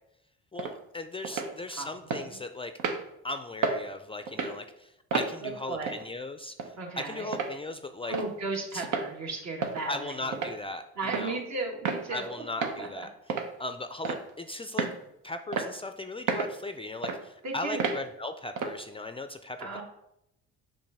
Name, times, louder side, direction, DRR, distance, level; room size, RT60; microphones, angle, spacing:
voice 1, 0.5-2.7 3.2-6.7 7.1-8.1 8.7-8.9 9.9-11.4 12.1-13.1 13.6-14.9 15.2-19.8, left 2 dB, 20° left, 8 dB, 0.4 m, -37 dB
sound 1, 0.6-0.7 1.2-1.5 2.1-2.2 2.8-3.0 3.6-3.8 4.3-4.5 5.1-5.3 5.9-6.0 6.6-6.7 7.3-7.5 8.1-8.3 8.8-9.1 9.6-9.8 10.3-10.6 11.1-11.3 11.9-12.0 12.6-12.8 13.3-13.5 14.0-14.3 14.8-15.0 15.5-15.7 16.3-16.5 17.0-17.2 17.8-18.0 18.6-18.8, right 5 dB, 80° right, 0.9 m, -30 dB
voice 2, 1.3-1.9 2.2-2.4 5.4-5.9 6.8-7.3 8.1-10.4 11.0-12.3 12.8-13.1 17.4-17.8 19.6-19.8, right 3 dB, 60° right, 1 dB, 1.5 m, -35 dB
7.2 x 2.6 x 5.4 m, 0.80 s
cardioid pair, 90°, 30 cm